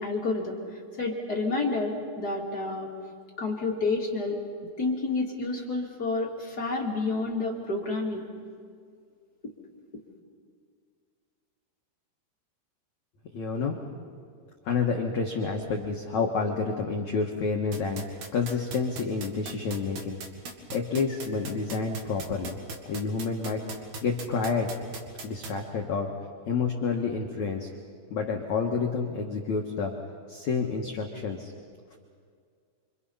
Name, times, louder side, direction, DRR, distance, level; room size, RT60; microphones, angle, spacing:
voice 1, 0.0-2.9 3.4-4.4 4.8-8.2, left 3 dB, 40° left, -2 dB, 1.4 m, -29 dB
voice 2, 13.3-13.8 14.6-20.2 20.7-22.6 22.8-23.6 24.0-24.7 25.2-26.1 26.5-27.7 28.1-29.9 30.3-31.5, left 4 dB, 90° left, 1 dB, 1.6 m, -29 dB
sound 1, 17.7-25.5, right 4 dB, 55° right, 2.4 m, -38 dB
27.5 x 26.0 x 5.6 m, 2.1 s
omnidirectional pair, 5.8 m